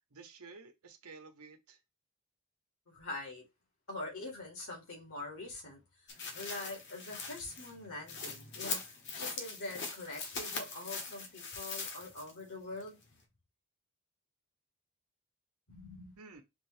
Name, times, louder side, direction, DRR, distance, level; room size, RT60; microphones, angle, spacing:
voice 1, 0.1-1.8 16.2-16.4, right 4 dB, 85° right, 1.0 m, -52 dB
voice 2, 2.9-3.4 3.9-5.8 6.3-13.0 15.7-16.1, left 2 dB, 70° left, 2.3 m, -44 dB
sound 1, 6.1-12.4 12.8-12.9, left 4 dB, 50° left, 1.0 m, -41 dB
5.2 x 2.8 x 3.3 m
head